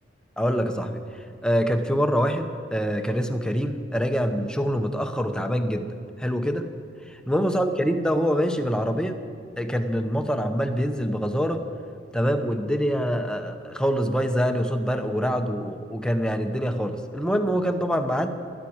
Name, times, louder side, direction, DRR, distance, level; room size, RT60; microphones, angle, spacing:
voice 1, 0.4-1.0 1.4-6.7 7.3-9.2 9.6-11.6 12.1-18.3, equal, 5° left, 7 dB, 0.8 m, -25 dB
12.5 x 12.0 x 8.7 m, 2.2 s
head